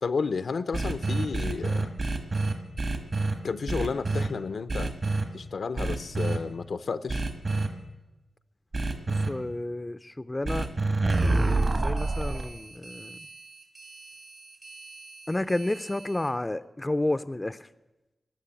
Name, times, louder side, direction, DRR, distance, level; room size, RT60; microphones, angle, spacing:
voice 1, 0.0-1.9 3.4-4.9 5.3-7.2, left 5 dB, 75° left, 12 dB, 0.6 m, -31 dB
sound 1, 0.7-3.3 3.7-4.3 4.7-5.2 5.8-6.4 7.1-7.7 8.7-9.3 10.4-16.3, right 2 dB, 50° right, 1.9 m, -28 dB
voice 2, 9.3-10.7 11.2-13.2 15.3-17.7, left 1 dB, 20° left, 12 dB, 0.5 m, -31 dB
19.0 x 6.3 x 8.8 m, 1.1 s
cardioid pair, 65°, 0 cm